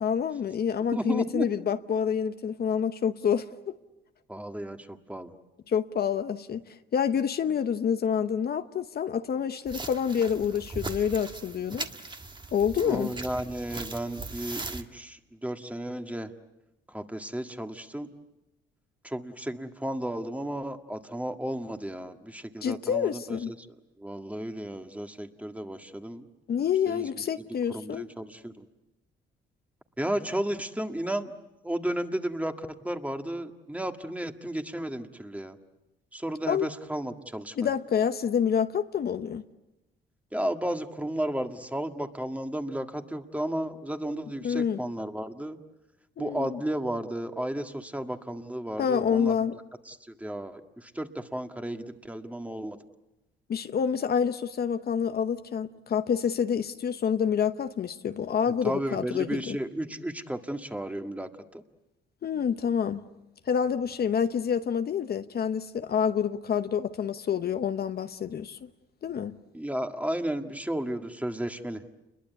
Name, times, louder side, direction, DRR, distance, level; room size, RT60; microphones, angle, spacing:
voice 1, 0.0-3.7 5.7-11.9 12.5-13.1 22.6-23.5 26.5-28.0 36.5-36.7 37.6-39.4 44.4-44.8 46.2-46.6 48.8-49.6 53.5-59.6 62.2-63.0 63.5-68.6 69.0-69.3, left 7 dB, 50° left, 9 dB, 0.9 m, -27 dB
voice 2, 0.9-1.5 4.3-5.3 12.8-16.3 16.9-18.1 19.0-23.7 24.0-26.3 26.9-27.1 27.7-28.7 30.0-31.3 31.6-35.6 36.1-37.7 40.3-45.6 46.2-49.4 49.9-52.8 58.5-61.6 69.5-71.8, right 1 dB, 5° right, 6 dB, 1.8 m, -33 dB
sound 1, 9.7-14.8, right 3 dB, 25° right, 1.6 m, -39 dB
29.0 x 22.0 x 8.3 m, 0.97 s
cardioid pair, 90°, 20 cm